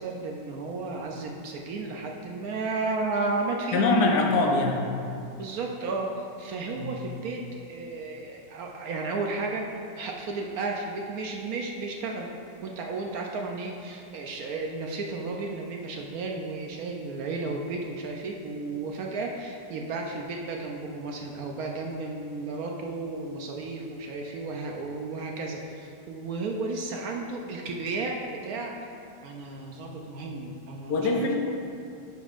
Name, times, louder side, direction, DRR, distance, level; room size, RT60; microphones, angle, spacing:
voice 1, 0.0-3.9 5.4-9.7 10.0-12.3 12.6-28.8 29.2-31.3, right 3 dB, 70° right, 1 dB, 0.9 m, -33 dB
voice 2, 3.7-4.8 6.8-6.9 30.9-31.3, left 3 dB, 75° left, 1 dB, 1.3 m, -23 dB
10.0 x 5.3 x 2.5 m, 2.6 s
omnidirectional pair, 1.8 m